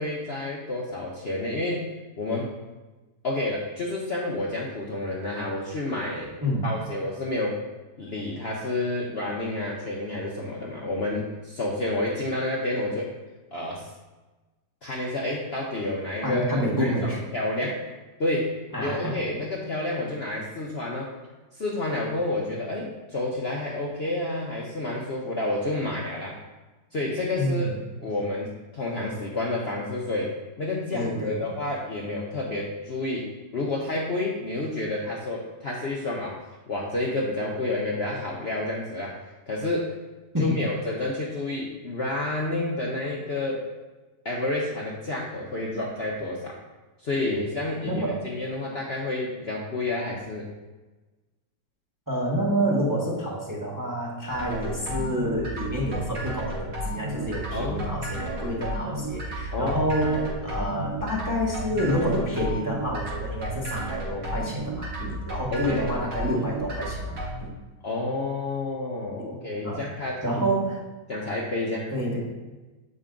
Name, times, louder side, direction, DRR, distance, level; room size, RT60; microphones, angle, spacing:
voice 1, 0.0-1.9 2.2-2.5 3.2-6.3 6.6-7.6 8.0-13.1 13.5-13.9 14.8-17.8 18.2-21.1 21.5-26.4 26.9-27.7 28.0-40.0 40.4-43.7 44.2-46.6 47.0-50.5 57.5-58.0 59.5-59.8 65.5-65.9 67.8-70.4 71.1-71.9, left 2 dB, 45° left, -3 dB, 0.9 m, -30 dB
voice 2, 16.2-17.2 18.7-19.2 27.4-27.8 30.9-31.5 40.3-40.7 47.8-48.3 52.1-67.5 69.6-70.9 71.9-72.3, equal, 15° right, -4 dB, 1.1 m, -28 dB
sound 1, 54.3-67.4, right 1 dB, 80° right, 2.4 m, -33 dB
7.1 x 5.3 x 3.8 m, 1.2 s
omnidirectional pair, 1.9 m